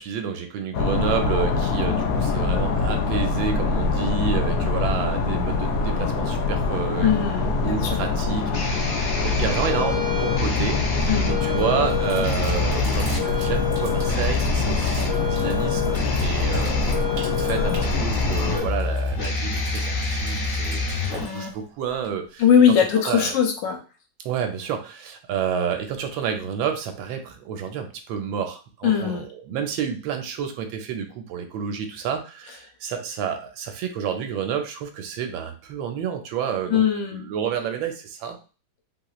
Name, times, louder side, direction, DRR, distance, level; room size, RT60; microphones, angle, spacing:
voice 1, 0.0-7.1 7.6-22.4 22.8-23.4 24.2-36.8 37.1-38.4, right 7 dB, 85° right, 6 dB, 1.4 m, -30 dB
sound 1, 0.7-18.6, left 4 dB, 90° left, 0.7 m, -24 dB
voice 2, 7.0-8.1 11.1-11.3 22.4-23.8 28.8-29.3 36.7-37.3, left 8 dB, 75° left, 3 dB, 1.3 m, -20 dB
sound 2, 7.0-21.5, left 4 dB, 55° left, 0.9 m, -27 dB
Sink (filling or washing), 11.6-22.4, right 3 dB, 65° right, 1.5 m, -44 dB
3.2 x 2.9 x 2.3 m, 0.35 s
omnidirectional pair, 2.1 m